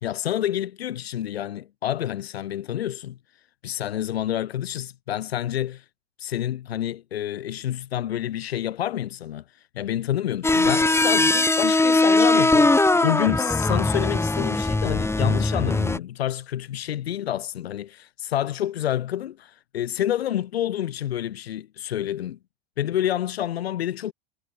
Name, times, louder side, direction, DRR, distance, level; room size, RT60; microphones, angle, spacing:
voice 1, 0.0-3.2 3.6-5.8 6.2-9.4 9.7-22.4 22.8-24.1, left 11 dB, 70° left, 2.9 m, -28 dB
sound 1, 10.4-16.0, left 2 dB, 10° left, 5.4 m, -20 dB
figure-of-eight pair, 85°, 32 cm